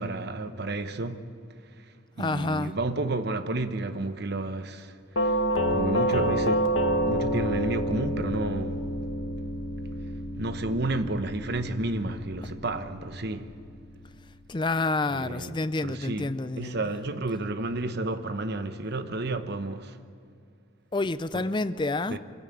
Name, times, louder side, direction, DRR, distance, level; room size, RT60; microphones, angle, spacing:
voice 1, 0.0-1.3 1.8-5.4 5.7-6.7 7.0-8.9 10.4-13.5 15.1-20.0 21.3-21.4 22.1-22.2, right 2 dB, 55° right, 1.0 m, -31 dB
voice 2, 2.2-2.7 14.5-16.8 20.9-22.2, left 2 dB, 25° left, 0.5 m, -28 dB
Doorbell, 5.2-14.0, equal, 80° left, 1.5 m, -29 dB
23.5 x 16.0 x 8.8 m
head